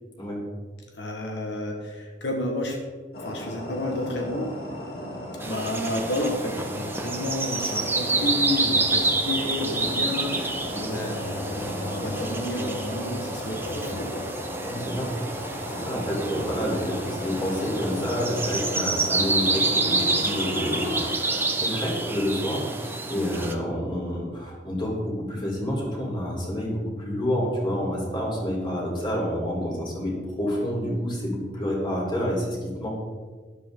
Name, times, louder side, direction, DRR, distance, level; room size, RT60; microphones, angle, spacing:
voice 1, 1.0-2.8 3.2-4.5 5.5-14.3, left 1 dB, 85° left, 1 dB, 1.7 m, -31 dB
sound 1, 3.1-21.1, equal, 65° left, 3.2 m, -36 dB
sound 2, 5.4-23.5, right 3 dB, 15° right, 1.1 m, -28 dB
voice 2, 14.6-15.1 15.4-32.9, equal, 25° left, -3 dB, 3.9 m, -29 dB
12.5 x 11.5 x 3.9 m, 1.4 s
head